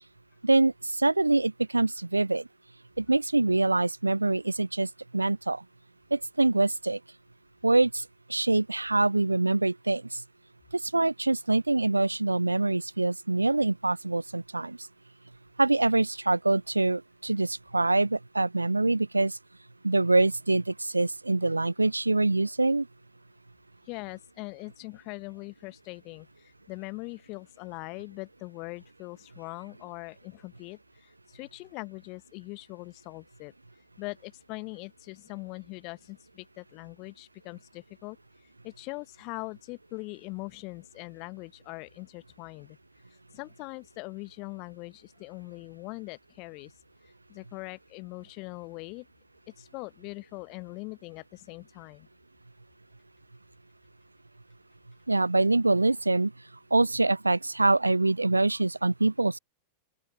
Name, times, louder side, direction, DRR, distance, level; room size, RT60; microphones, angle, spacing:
voice 1, 0.4-2.5 3.0-5.6 6.1-7.0 7.6-8.0 8.3-10.2 10.7-14.8 15.6-19.4 19.8-22.9 55.1-56.3 56.7-59.4, right 2 dB, 85° right, 0.4 m, -25 dB
voice 2, 23.9-33.5 34.0-38.2 38.6-42.8 43.3-46.7 47.3-49.1 49.6-52.1, left 28 dB, 45° left, 1.1 m, -41 dB
open air
figure-of-eight pair, 90°, 0 cm